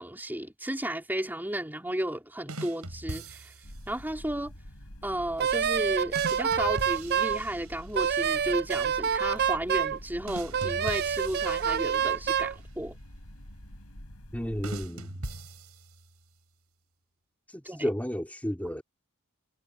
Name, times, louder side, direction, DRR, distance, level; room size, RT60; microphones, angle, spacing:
voice 1, 0.0-3.5 3.9-4.5 5.0-12.9 17.6-17.8, right 1 dB, 10° right, 3.8 m, -33 dB
sound 1, 2.5-3.9 6.1-8.1 10.3-12.4 14.6-16.2, right 2 dB, 85° right, 6.5 m, -41 dB
sound 2, 3.6-14.9, equal, 75° left, 6.3 m, -46 dB
Wind instrument woodwind instrument, 5.4-7.4 7.9-10.0 10.5-12.5, right 8 dB, 45° right, 0.5 m, -27 dB
voice 2, 14.3-15.3 17.5-18.8, equal, 5° left, 3.0 m, -32 dB
head